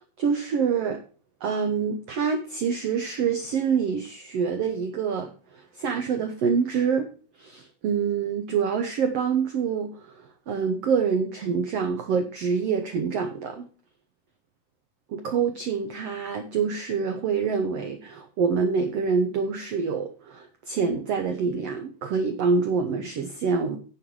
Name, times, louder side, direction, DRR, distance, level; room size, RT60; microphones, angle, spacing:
voice 1, 0.2-1.0 1.4-7.1 7.4-13.7 15.1-23.8, right 6 dB, 75° right, 6 dB, 1.4 m, -26 dB
9.8 x 5.8 x 6.3 m, 0.39 s
omnidirectional pair, 4.1 m